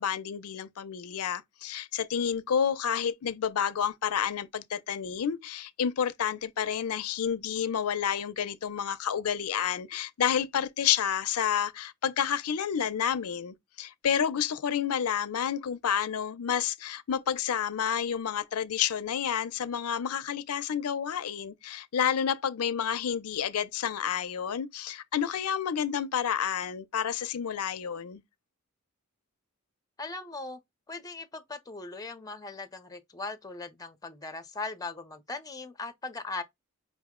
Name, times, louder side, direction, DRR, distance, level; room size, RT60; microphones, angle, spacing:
voice 1, 0.0-28.2, left 8 dB, 85° left, 0.5 m, -30 dB
voice 2, 30.0-30.6 30.9-36.4, left 3 dB, 15° left, 0.6 m, -39 dB
5.1 x 2.0 x 3.6 m
head